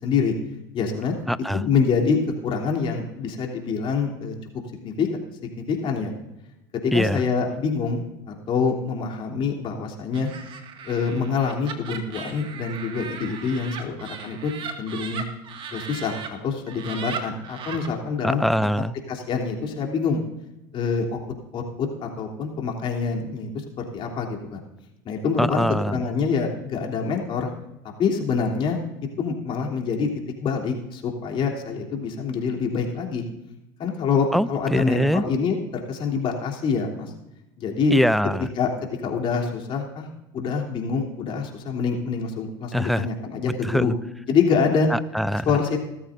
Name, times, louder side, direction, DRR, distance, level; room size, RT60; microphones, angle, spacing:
voice 1, 0.0-0.3 0.7-1.1 1.5-4.3 4.8-5.1 5.7-6.1 6.8-10.3 10.8-13.9 14.2-14.5 14.8-15.2 15.7-18.7 19.1-20.2 20.7-21.2 21.5-23.5 23.8-24.6 25.0-25.6 25.9-27.5 28.0-28.8 29.2-30.1 30.4-33.2 33.8-37.1 37.6-37.9 38.6-38.7 39.0-40.1 40.3-43.9 44.3-44.9 45.4-45.8, left 5 dB, 45° left, 1 dB, 3.2 m, -25 dB
voice 2, 1.3-1.6 6.9-7.2 18.2-18.9 25.4-26.0 34.3-35.2 37.9-38.5 42.7-43.1 43.6-43.9 44.9-45.5, equal, ahead, 17 dB, 0.4 m, -23 dB
Laughter, 10.1-16.3 16.7-17.9, right 7 dB, 45° right, 1.9 m, -37 dB
18.0 x 13.5 x 2.6 m, 0.94 s
hypercardioid pair, 90°, 12 cm